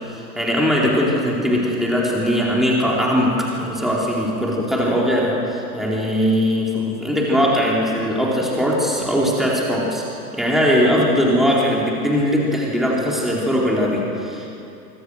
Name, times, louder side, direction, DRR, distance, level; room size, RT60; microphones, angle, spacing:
voice 1, 0.0-14.5, equal, ahead, -4 dB, 4.3 m, -20 dB
26.0 x 24.5 x 6.5 m, 2.8 s
figure-of-eight pair, 105°, 48 cm